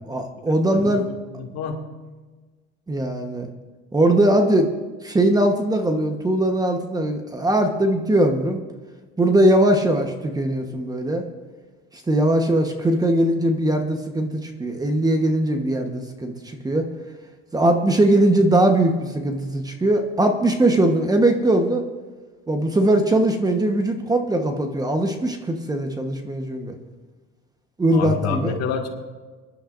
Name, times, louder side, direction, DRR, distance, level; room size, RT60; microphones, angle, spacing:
voice 1, 0.1-1.1 2.9-3.5 3.9-4.7 5.0-8.6 9.2-11.2 11.9-16.9 17.5-21.8 22.5-26.8 27.8-28.5, right 1 dB, 10° right, 5 dB, 1.1 m, -20 dB
voice 2, 0.7-1.8 27.9-28.9, left 6 dB, 55° left, 2 dB, 2.0 m, -28 dB
24.5 x 11.0 x 2.6 m, 1.3 s
cardioid pair, 130°, 30 cm